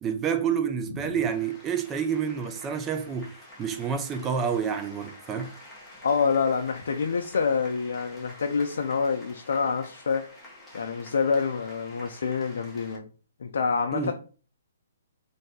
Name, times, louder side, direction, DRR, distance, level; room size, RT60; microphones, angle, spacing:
voice 1, 0.0-5.5 13.9-14.1, right 7 dB, 15° right, 0.3 m, -29 dB
sound 1, 1.3-13.0, left 1 dB, 5° left, 0.7 m, -49 dB
voice 2, 6.0-10.2 10.7-13.1 13.4-14.1, left 5 dB, 75° left, 0.4 m, -27 dB
2.6 x 2.2 x 4.0 m
hypercardioid pair, 155°, 0 cm